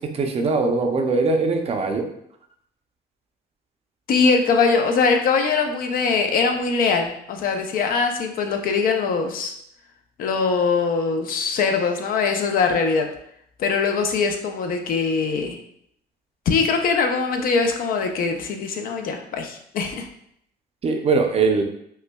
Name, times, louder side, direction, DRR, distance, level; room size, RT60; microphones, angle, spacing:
voice 1, 0.0-2.1 20.8-21.6, right 4 dB, 35° right, 4 dB, 0.5 m, -21 dB
voice 2, 4.1-9.5 10.2-13.1 13.6-15.6 16.5-20.1, left 5 dB, 55° left, 5 dB, 0.5 m, -22 dB
5.4 x 2.2 x 2.2 m, 0.71 s
cardioid pair, 110°, 17 cm